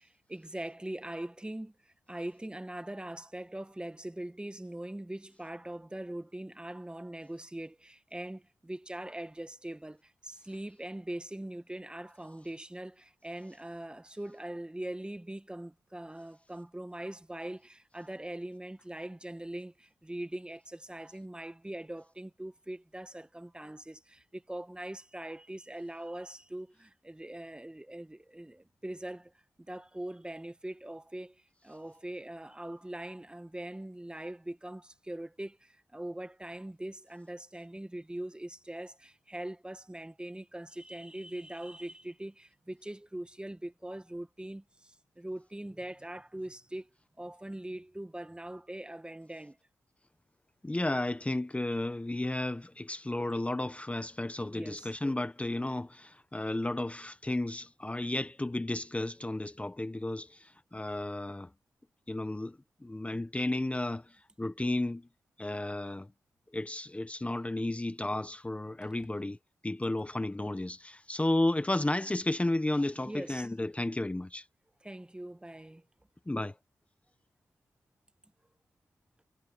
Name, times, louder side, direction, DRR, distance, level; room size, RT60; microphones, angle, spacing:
voice 1, 0.0-29.3 29.7-46.9 47.2-49.6 54.5-55.0 69.0-69.1 73.0-73.5 74.8-75.8, right 1 dB, 15° right, 1.5 m, -42 dB
voice 2, 50.6-61.5 62.1-62.6 62.8-64.0 64.4-65.1 65.4-66.1 66.5-69.4 69.6-74.4 76.3-76.5, left 1 dB, 20° left, 1.3 m, -33 dB
supercardioid pair, 45°, 7 cm